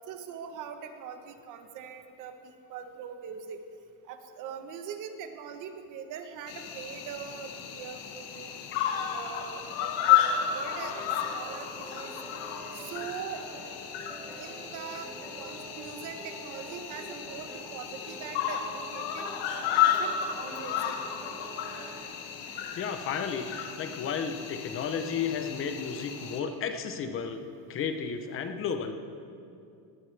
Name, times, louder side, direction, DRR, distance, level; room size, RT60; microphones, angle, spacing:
voice 1, 0.1-3.6 4.1-11.0 11.3-12.1 12.7-13.5 14.4-15.1 15.4-19.3 19.8-21.0, right 7 dB, 40° right, 7 dB, 1.0 m, -42 dB
Cricket, 6.5-26.4, left 10 dB, 75° left, 1.6 m, -32 dB
sound 1, 10.3-22.0, right 1 dB, 5° right, 0.9 m, -46 dB
voice 2, 22.7-27.4 27.7-28.9, left 6 dB, 30° left, 8 dB, 0.7 m, -33 dB
18.5 x 15.0 x 3.3 m, 2.5 s
cardioid pair, 175°, 46 cm